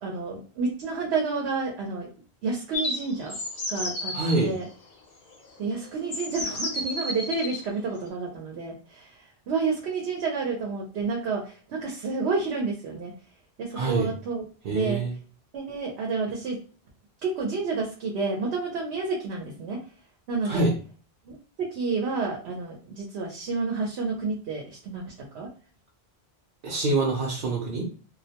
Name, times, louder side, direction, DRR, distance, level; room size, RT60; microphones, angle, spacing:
voice 1, 0.0-2.1 2.4-3.3 3.7-4.1 4.4-4.7 5.6-9.1 9.5-13.1 13.6-14.4 14.7-15.0 15.5-16.6 17.2-19.8 20.3-20.7 21.3-25.0 25.3-25.5, right 4 dB, 85° right, -1 dB, 0.9 m, -30 dB
sound 1, 2.7-4.4 5.4-5.5 6.1-7.6, left 1 dB, 65° left, 0.8 m, -32 dB
voice 2, 4.1-4.5 13.7-14.1 14.6-15.1 20.4-20.7 26.6-27.8, right 2 dB, 60° right, -3 dB, 0.7 m, -25 dB
2.3 x 2.1 x 2.8 m, 0.39 s
omnidirectional pair, 1.1 m